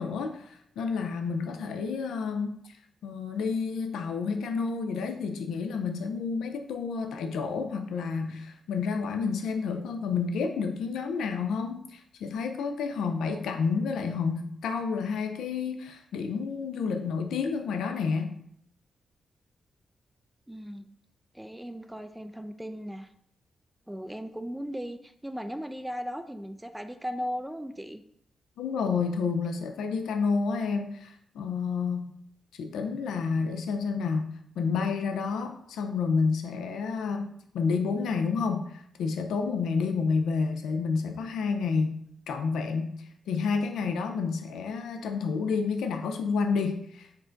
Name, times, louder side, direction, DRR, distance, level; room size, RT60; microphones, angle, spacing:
voice 1, 0.0-2.7 3.0-18.3 28.6-32.1 32.5-34.3 34.6-42.0 42.3-47.2, left 5 dB, 90° left, 6 dB, 0.4 m, -30 dB
voice 2, 20.5-20.9 21.3-23.1 23.9-28.0, equal, 5° right, 8 dB, 0.3 m, -37 dB
4.4 x 2.6 x 4.3 m, 0.70 s
cardioid pair, 80°, 0 cm